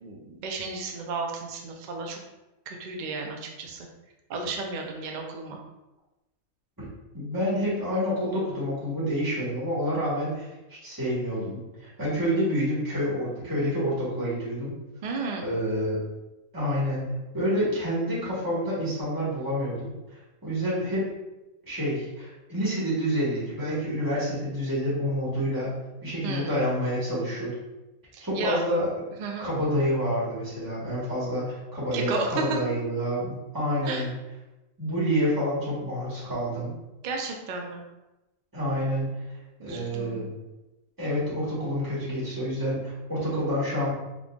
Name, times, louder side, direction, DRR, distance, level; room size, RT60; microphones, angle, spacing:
voice 1, 0.0-2.2 2.7-3.9 4.3-5.6 15.0-15.4 26.2-26.6 28.1-28.6 29.2-29.5 31.9-32.6 33.8-34.1 37.0-37.8 39.6-40.2, right 4 dB, 60° right, 1 dB, 0.5 m, -33 dB
voice 2, 7.1-14.7 15.4-16.0 16.5-19.9 20.4-21.1 21.7-25.7 26.0-27.5 28.2-28.9 29.4-34.1 34.8-36.7 38.5-39.1 39.6-40.3 41.0-43.9, equal, 15° right, -9 dB, 1.4 m, -28 dB
3.7 x 3.6 x 2.3 m, 1.0 s
omnidirectional pair, 1.5 m